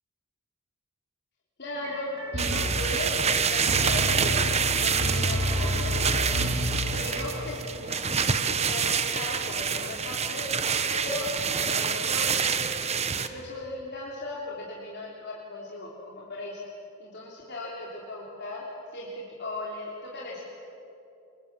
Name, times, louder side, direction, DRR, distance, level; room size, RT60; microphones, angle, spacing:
voice 1, 1.6-6.4 6.9-10.4 10.9-11.3 11.5-12.5 13.2-16.6 17.0-18.6 18.9-20.4, left 2 dB, 50° left, -4 dB, 3.3 m, -37 dB
sound 1, 1.8-7.4, left 1 dB, 90° right, 4.3 m, -30 dB
sound 2, 2.4-13.3, right 6 dB, 30° right, 1.0 m, -27 dB
27.5 x 24.0 x 7.5 m, 2.8 s
head